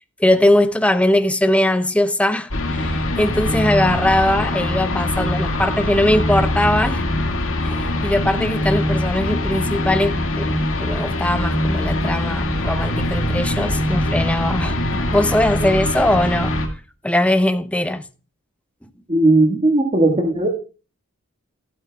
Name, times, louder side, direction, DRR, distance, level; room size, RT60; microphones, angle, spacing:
voice 1, 0.2-7.0 7.6-16.6 17.0-18.0 18.8-18.9, left 1 dB, 5° left, 0.7 m, -20 dB
sound 1, 2.5-16.7, left 1 dB, 65° left, 1.9 m, -22 dB
voice 2, 19.1-20.5, right 2 dB, 30° right, 1.6 m, -16 dB
15.5 x 12.0 x 2.3 m
head